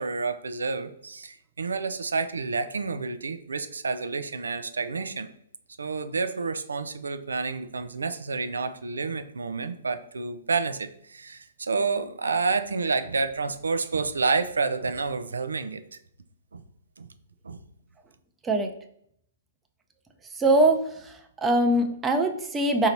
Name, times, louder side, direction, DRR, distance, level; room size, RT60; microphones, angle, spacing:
voice 1, 0.0-5.3 5.8-16.0 16.5-16.6 17.0-17.1 17.4-17.6, right 4 dB, 90° right, 11 dB, 0.4 m, -29 dB
voice 2, 20.3-22.9, right 1 dB, 15° right, 4 dB, 0.5 m, -23 dB
4.0 x 2.7 x 4.4 m, 0.70 s
hypercardioid pair, 130°, 0 cm